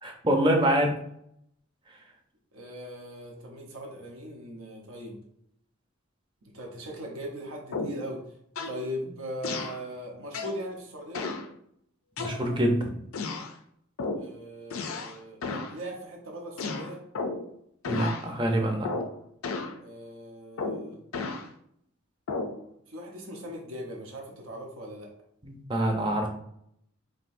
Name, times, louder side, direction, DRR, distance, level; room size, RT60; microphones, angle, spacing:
voice 1, 0.0-1.0 12.2-12.9 17.9-18.9 25.4-26.3, right 1 dB, 20° right, 3 dB, 0.6 m, -25 dB
voice 2, 2.5-5.2 6.5-8.2 8.6-11.3 14.2-17.0 19.8-21.0 22.9-25.1, equal, 90° right, -1 dB, 1.0 m, -39 dB
sound 1, 7.7-8.1 8.6-8.8 9.4-9.8 10.3-10.6 11.1-11.5 12.2-12.7 13.1-13.5 14.0-14.3 14.7-15.2 15.4-15.8 16.6-17.5 17.8-18.3 18.8-19.2 19.4-19.8 20.6-21.5 22.3-22.6, left 3 dB, 80° left, 0.5 m, -33 dB
5.2 x 3.0 x 2.6 m, 0.72 s
head